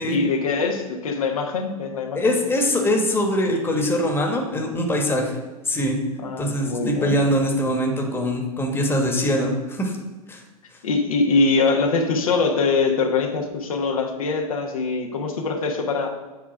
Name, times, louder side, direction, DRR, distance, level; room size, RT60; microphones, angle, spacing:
voice 1, 0.0-2.4 6.2-7.1 10.8-16.1, left 4 dB, 70° left, 2 dB, 1.1 m, -23 dB
voice 2, 2.1-5.4 5.7-6.0 6.4-9.9 10.3-10.4, equal, 10° left, 2 dB, 1.4 m, -22 dB
8.0 x 3.5 x 5.9 m, 1.2 s
figure-of-eight pair, 95°, 18 cm